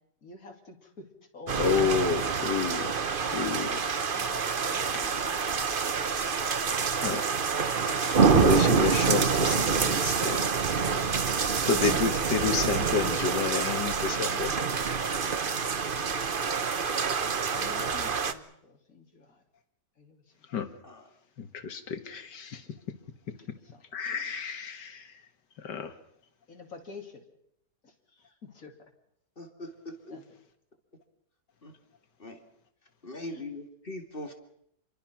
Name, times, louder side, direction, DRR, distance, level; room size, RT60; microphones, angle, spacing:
voice 1, 0.2-1.7 4.1-6.4 7.8-8.3 9.4-9.7 17.5-19.4 20.0-20.5 22.5-22.8 23.4-23.8 26.5-27.3 27.8-28.9 30.1-30.3 33.2-33.5, left 3 dB, 55° left, 2 dB, 3.4 m, -49 dB
sound 1, 1.5-18.3, right 5 dB, 40° right, 1.0 m, -27 dB
voice 2, 1.6-2.9 3.3-3.8 7.0-7.2 8.2-10.6 11.6-14.5 20.5-20.7 21.4-22.6 23.9-25.1 25.6-25.9, left 6 dB, 85° left, 9 dB, 2.3 m, -30 dB
voice 3, 3.3-3.8 20.8-21.0 29.4-30.2 31.6-31.7 32.2-32.4 33.0-34.3, left 1 dB, 30° left, 5 dB, 2.6 m, -41 dB
27.5 x 23.5 x 6.0 m, 0.75 s
omnidirectional pair, 1.8 m